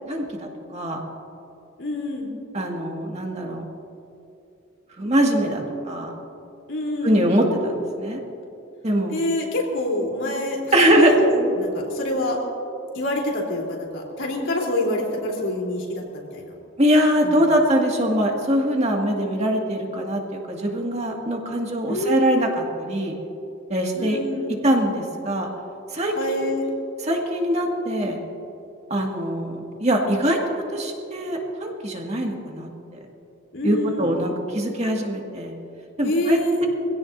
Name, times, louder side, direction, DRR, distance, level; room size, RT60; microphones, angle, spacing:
voice 1, 0.1-1.0 2.5-3.6 5.0-6.1 7.0-8.2 8.8-9.1 10.7-11.1 16.8-23.1 23.7-24.2 24.6-25.5 25.9-26.5 27.0-28.2 28.9-32.7 33.6-35.5 36.0-36.7, equal, 35° right, 0 dB, 2.0 m, -22 dB
voice 2, 1.8-2.3 6.7-7.3 9.1-12.4 12.9-16.5 17.2-17.5 21.9-22.5 23.9-24.6 26.2-26.6 33.5-34.2 36.0-36.6, left 1 dB, 75° left, -1 dB, 3.5 m, -27 dB
24.5 x 16.5 x 2.7 m, 2.8 s
head